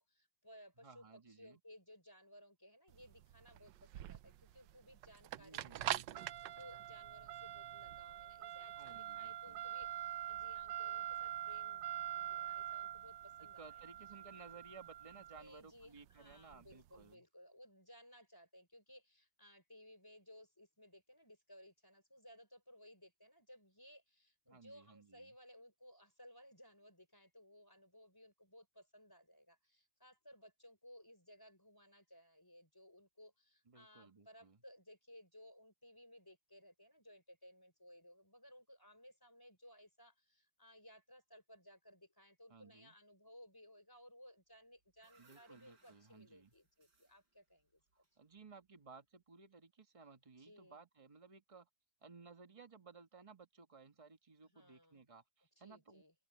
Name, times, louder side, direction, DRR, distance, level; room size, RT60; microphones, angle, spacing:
voice 1, 0.0-13.9 15.3-48.1 50.4-50.8 54.5-55.0 55.6-56.1, equal, 10° left, 4.3 m, -61 dB
voice 2, 0.8-1.6 5.4-6.4 8.7-9.7 13.4-17.2 24.5-25.3 33.7-34.6 42.5-42.9 45.2-46.5 47.9-51.7 52.0-56.0, right 4 dB, 20° right, 1.3 m, -59 dB
sound 1, 2.9-17.0, right 12 dB, 80° right, 1.3 m, -44 dB
sound 2, 44.5-48.8, right 4 dB, 65° right, 5.1 m, -73 dB
omnidirectional pair, 2.0 m